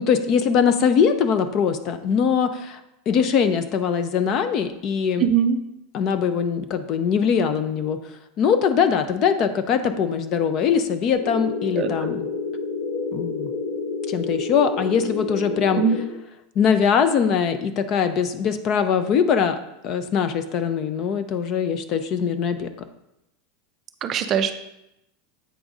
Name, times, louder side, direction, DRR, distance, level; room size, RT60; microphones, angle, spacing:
voice 1, 0.0-2.8 3.1-5.3 5.9-8.0 8.4-12.3 13.1-13.5 14.1-15.8 16.6-22.7, left 7 dB, 30° left, 10 dB, 0.4 m, -22 dB
voice 2, 5.2-5.6 11.7-12.1 15.8-16.0 24.0-24.5, right 8 dB, 25° right, 8 dB, 0.4 m, -21 dB
sound 1, 11.1-16.1, left 4 dB, 65° left, 1.9 m, -29 dB
8.0 x 3.9 x 4.8 m, 0.86 s
supercardioid pair, 175°, 0 cm